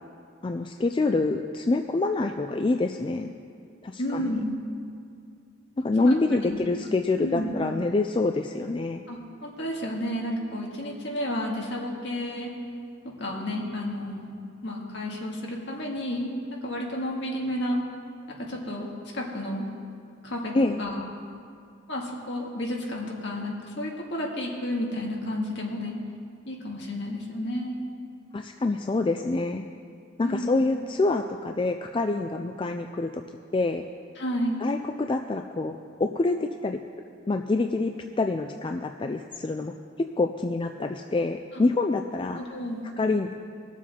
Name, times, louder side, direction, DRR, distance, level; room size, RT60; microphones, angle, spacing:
voice 1, 0.4-3.3 3.8-4.4 5.8-9.0 20.5-20.8 28.3-29.6 30.2-33.2 33.5-33.9 34.6-36.8 37.3-39.7 40.2-42.5 43.0-43.3, left 3 dB, 25° left, 6 dB, 0.3 m, -26 dB
voice 2, 4.0-4.5 6.0-6.2 6.5-6.7 7.2-7.6 9.1-12.5 13.0-14.3 14.6-16.3 16.6-17.8 18.4-19.7 20.2-21.0 21.9-26.0 26.5-27.7 30.2-30.5 34.2-34.6 42.4-42.9, left 1 dB, 60° left, -2 dB, 2.0 m, -31 dB
20.0 x 7.3 x 4.3 m, 2.4 s
head